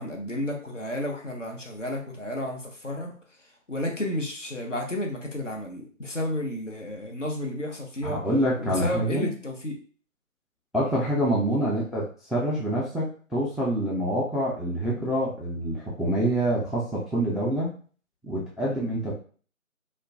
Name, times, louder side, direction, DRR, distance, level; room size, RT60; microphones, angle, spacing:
voice 1, 0.0-3.2 3.7-8.2 8.6-9.8 11.5-11.6, left 1 dB, 60° left, 2 dB, 0.8 m, -32 dB
voice 2, 8.0-9.3 10.7-17.7 18.2-19.1, right 1 dB, ahead, -6 dB, 0.4 m, -26 dB
3.0 x 2.1 x 2.6 m, 0.41 s
figure-of-eight pair, 170°, 41 cm